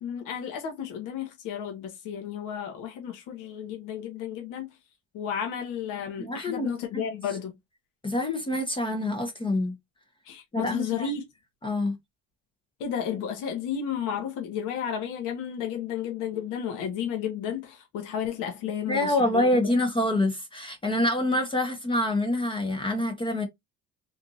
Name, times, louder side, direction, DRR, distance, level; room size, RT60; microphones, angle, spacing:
voice 1, 0.0-4.7 5.1-7.5 10.3-11.2 12.8-19.6, left 8 dB, 80° left, 1.1 m, -32 dB
voice 2, 6.2-6.7 8.0-9.7 10.5-11.1 11.6-11.9 18.9-23.5, left 1 dB, 15° left, 0.6 m, -26 dB
3.6 x 2.4 x 2.7 m
cardioid pair, 135°, 31 cm